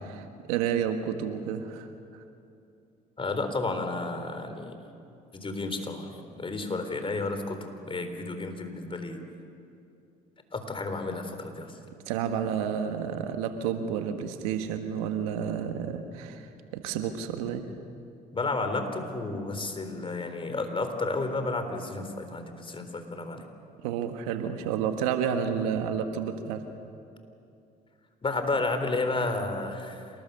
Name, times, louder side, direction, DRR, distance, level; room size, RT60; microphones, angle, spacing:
voice 1, 0.0-1.9 2.1-2.2 12.1-17.6 23.8-26.6, right 8 dB, 85° right, 7 dB, 1.6 m, -30 dB
voice 2, 3.2-4.8 5.3-7.6 7.9-9.2 10.5-11.7 18.3-23.4 28.2-30.0, left 3 dB, 30° left, 7 dB, 3.8 m, -31 dB
28.0 x 20.0 x 6.9 m, 2.6 s
supercardioid pair, 70°, 18 cm